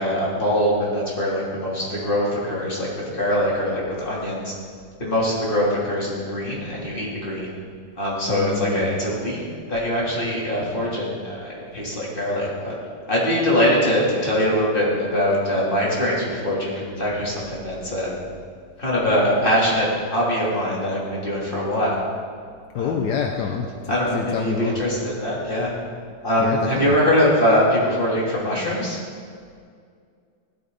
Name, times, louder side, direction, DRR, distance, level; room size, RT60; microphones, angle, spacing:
voice 1, 0.0-4.5 5.0-7.5 8.0-9.4 9.7-12.7 13.1-18.2 18.8-22.0 22.7-23.1 23.9-25.7 26.2-29.0, equal, 30° left, -6 dB, 3.4 m, -22 dB
voice 2, 8.3-8.9 22.7-24.8 26.4-26.9, left 6 dB, 75° left, 3 dB, 1.4 m, -27 dB
15.5 x 12.5 x 4.1 m, 2.2 s
omnidirectional pair, 1.8 m